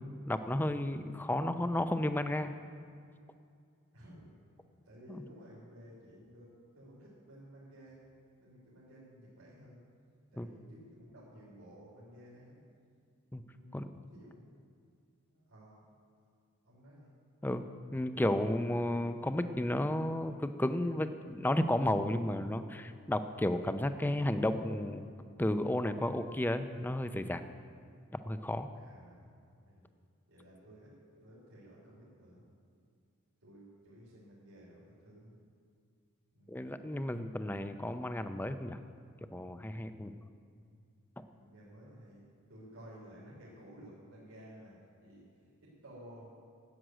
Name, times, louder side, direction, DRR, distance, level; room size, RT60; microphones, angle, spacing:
voice 1, 0.3-2.5 5.1-5.2 10.4-10.5 13.3-13.4 13.7-13.8 17.4-17.6 17.9-25.0 25.4-27.4 28.2-28.7 36.5-38.8 39.3-40.1, left 1 dB, 10° left, 9 dB, 0.5 m, -33 dB
voice 2, 3.9-4.3 4.8-6.5 6.7-8.1 8.4-9.8 10.3-12.6 13.4-14.4 15.3-15.9 16.6-17.1 28.7-29.3 29.6-29.8 30.3-30.9 31.2-32.4 33.4-35.4 36.3-36.6 41.3-46.3, equal, 80° right, -7 dB, 3.3 m, -54 dB
11.0 x 7.6 x 9.1 m, 2.3 s
head